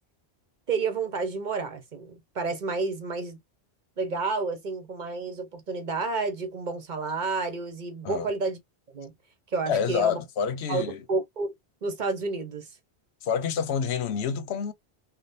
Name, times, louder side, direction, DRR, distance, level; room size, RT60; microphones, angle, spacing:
voice 1, 0.7-3.4 4.0-8.6 8.9-9.1 9.5-10.2 10.7-11.5 11.8-12.8, right 4 dB, 50° right, 0.8 m, -30 dB
voice 2, 9.7-11.0 13.2-14.7, left 7 dB, 80° left, 0.9 m, -28 dB
3.5 x 2.2 x 2.5 m
omnidirectional pair, 1.1 m